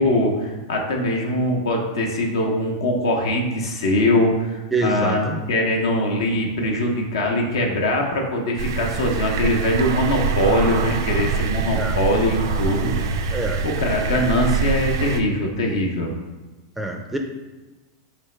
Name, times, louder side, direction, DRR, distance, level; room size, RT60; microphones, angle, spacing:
voice 1, 0.0-13.1 13.6-16.1, left 1 dB, 85° left, 1 dB, 0.7 m, -22 dB
voice 2, 4.7-5.5 11.8-12.0 13.3-13.6 14.1-14.2 16.8-17.2, right 2 dB, 5° right, 2 dB, 0.4 m, -26 dB
sound 1, 8.6-15.2, right 5 dB, 80° right, 0.4 m, -24 dB
4.1 x 3.3 x 3.2 m, 1.2 s
hypercardioid pair, 120°, 2 cm